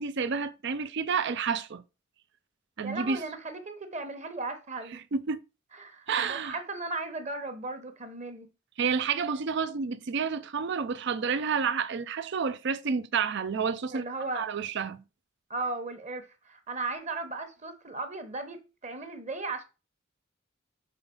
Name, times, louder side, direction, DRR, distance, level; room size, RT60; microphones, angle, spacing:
voice 1, 0.0-1.8 2.8-3.2 5.1-5.4 6.1-6.6 8.8-14.0 14.4-15.0, right 6 dB, 60° right, 0.5 m, -29 dB
voice 2, 2.8-5.0 5.7-8.5 13.9-14.5 15.5-19.6, right 3 dB, 35° right, 1.1 m, -36 dB
5.7 x 4.0 x 5.3 m
head